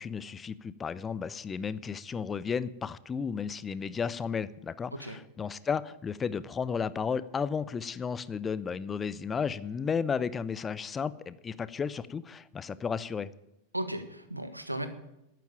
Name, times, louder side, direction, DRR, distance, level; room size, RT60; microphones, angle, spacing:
voice 1, 0.0-13.3, left 6 dB, 20° left, 17 dB, 0.6 m, -33 dB
voice 2, 13.7-14.9, right 1 dB, 85° right, 10 dB, 1.4 m, -35 dB
12.0 x 9.2 x 9.0 m, 0.87 s
figure-of-eight pair, 90°, 0 cm